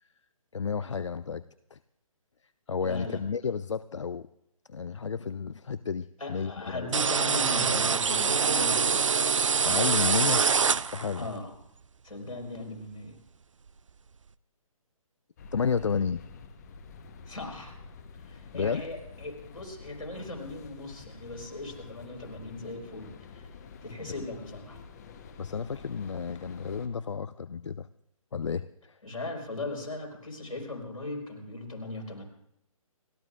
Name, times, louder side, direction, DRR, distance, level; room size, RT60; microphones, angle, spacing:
voice 1, 0.5-1.8 2.7-4.3 4.7-6.9 9.6-10.5 10.9-11.3 15.5-16.2 18.5-18.9 24.0-24.3 25.4-27.9 28.3-29.0, left 6 dB, 60° left, 16 dB, 0.4 m, -32 dB
voice 2, 2.8-3.2 6.2-9.1 11.1-11.5 12.0-13.2 17.3-17.7 18.3-23.5 23.8-24.8 29.0-32.2, left 2 dB, 75° left, 1 dB, 4.9 m, -38 dB
sound 1, 6.9-11.3, right 6 dB, 60° right, 0.5 m, -25 dB
sound 2, 15.4-26.9, left 5 dB, 30° left, 1.1 m, -48 dB
29.5 x 14.0 x 2.5 m, 0.80 s
figure-of-eight pair, 140°, 18 cm